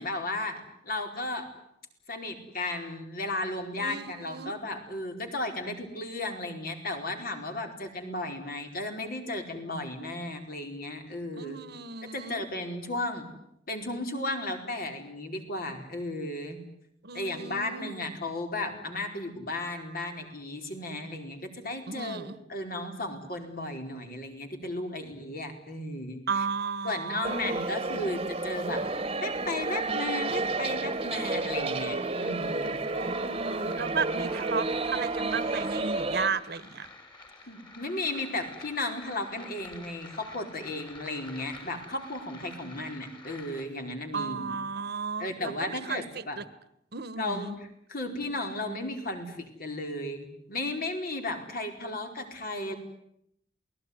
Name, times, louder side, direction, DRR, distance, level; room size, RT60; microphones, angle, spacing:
voice 1, 0.0-1.5 2.1-11.7 12.1-13.3 13.7-16.6 17.1-26.5 26.8-28.8 29.2-32.8 37.5-44.6 45.2-46.4 47.2-47.5 47.9-52.7, left 2 dB, 55° left, 5 dB, 4.7 m, -35 dB
voice 2, 3.8-4.5 11.4-12.4 17.0-18.0 21.9-22.4 26.3-27.6 33.0-36.9 44.1-46.4 46.9-47.6, right 5 dB, 60° right, 16 dB, 1.4 m, -34 dB
sound 1, 26.6-43.7, left 2 dB, 25° left, 5.7 m, -50 dB
sound 2, 27.2-36.3, right 3 dB, 30° right, 1.5 m, -31 dB
28.0 x 19.0 x 9.7 m, 0.77 s
head